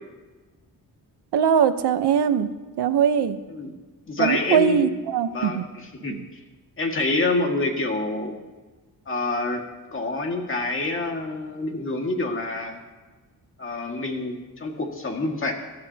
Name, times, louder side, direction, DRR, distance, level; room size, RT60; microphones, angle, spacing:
voice 1, 1.3-2.5 2.8-3.4 4.2-5.7 6.1-6.2, right 8 dB, 90° right, 10 dB, 1.0 m, -21 dB
voice 2, 4.1-5.0 5.3-6.4 6.8-8.4 9.1-9.6 9.9-12.8 13.6-15.5, left 2 dB, 30° left, 2 dB, 2.0 m, -27 dB
25.5 x 13.5 x 2.9 m, 1.2 s
wide cardioid pair, 150°, 39 cm